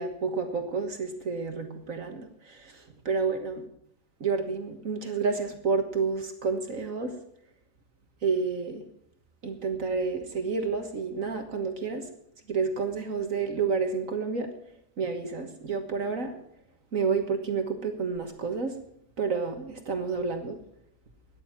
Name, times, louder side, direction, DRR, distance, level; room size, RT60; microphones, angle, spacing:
voice 1, 0.0-3.7 4.2-7.1 8.2-8.8 9.4-12.1 12.5-14.5 15.0-16.4 16.9-18.8 19.2-20.6, right 5 dB, 55° right, 6 dB, 1.9 m, -30 dB
13.5 x 10.0 x 7.5 m, 0.72 s
omnidirectional pair, 1.7 m